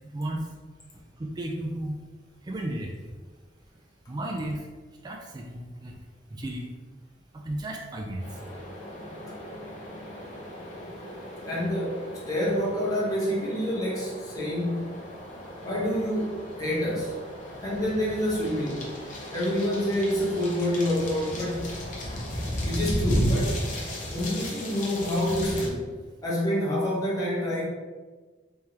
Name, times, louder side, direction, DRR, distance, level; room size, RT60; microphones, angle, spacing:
voice 1, 1.2-1.9 2.4-2.9 4.1-4.6 5.0-6.0 6.3-6.7 7.4-8.2, right 1 dB, 20° right, 0 dB, 0.3 m, -33 dB
sound 1, 8.2-25.7, equal, 45° left, 0.7 m, -34 dB
voice 2, 11.4-15.0 15.6-17.2 17.6-18.9 19.3-21.8 22.6-23.6 24.1-25.9 26.2-27.6, left 1 dB, 20° left, -7 dB, 1.0 m, -27 dB
3.5 x 3.2 x 2.8 m, 1.4 s
head